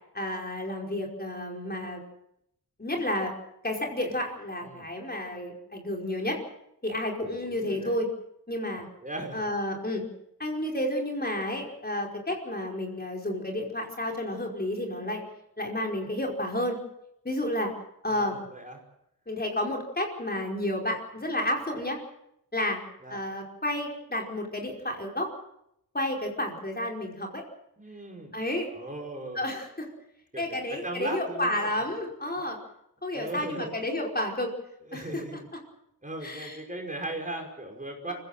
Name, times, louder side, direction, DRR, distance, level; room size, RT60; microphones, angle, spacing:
voice 1, 0.1-2.0 2.8-3.3 3.6-6.4 6.8-8.1 8.5-8.9 9.3-10.1 10.4-15.2 15.6-16.8 17.3-17.7 18.0-18.4 19.3-22.0 22.5-22.8 23.1-25.3 25.9-27.4 28.3-28.7 29.4-29.9 30.4-32.6 33.0-34.5 34.9-35.2 36.2-36.6 38.1-38.2, left 1 dB, 25° left, 0 dB, 5.2 m, -31 dB
voice 2, 7.2-8.0 8.7-9.4 18.1-18.8 23.0-23.2 27.8-28.3 28.7-29.4 30.3-31.8 33.1-33.7 34.9-35.4 36.0-38.1, right 1 dB, 20° right, 2 dB, 5.6 m, -38 dB
24.5 x 16.5 x 7.7 m, 0.78 s
cardioid pair, 75°, 38 cm